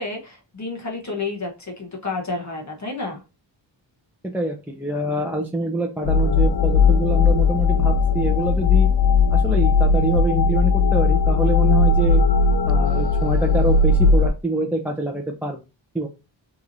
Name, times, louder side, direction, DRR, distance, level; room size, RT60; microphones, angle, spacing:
voice 1, 0.0-3.2, left 3 dB, 35° left, 0 dB, 1.1 m, -30 dB
voice 2, 4.3-8.9 9.3-12.2 12.6-15.6 15.9-16.1, right 2 dB, 5° right, 0 dB, 0.5 m, -25 dB
sound 1, 6.0-14.3, left 4 dB, 55° left, 0.5 m, -17 dB
5.7 x 3.0 x 2.6 m, 0.28 s
wide cardioid pair, 135°, 46 cm